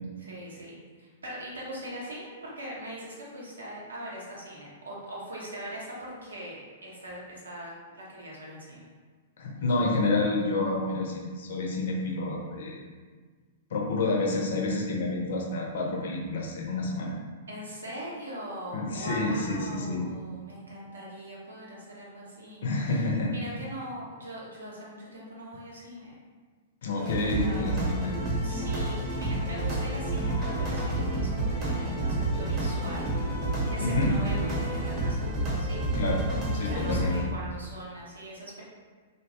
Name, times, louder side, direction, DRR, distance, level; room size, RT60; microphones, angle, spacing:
voice 1, 0.2-8.9 17.5-23.1 23.3-26.1 27.4-27.7 28.4-35.3 35.6-36.0 36.6-38.6, right 1 dB, 80° right, -5 dB, 0.9 m, -41 dB
voice 2, 9.4-12.8 13.7-17.2 18.7-20.1 22.6-23.3 26.8-28.1 33.8-34.2 35.9-36.3 36.5-37.2, left 2 dB, 65° left, -1 dB, 0.6 m, -29 dB
sound 1, 27.0-37.2, right 1 dB, 35° right, 0.9 m, -29 dB
2.8 x 2.2 x 2.9 m, 1.5 s
figure-of-eight pair, 110°, 0 cm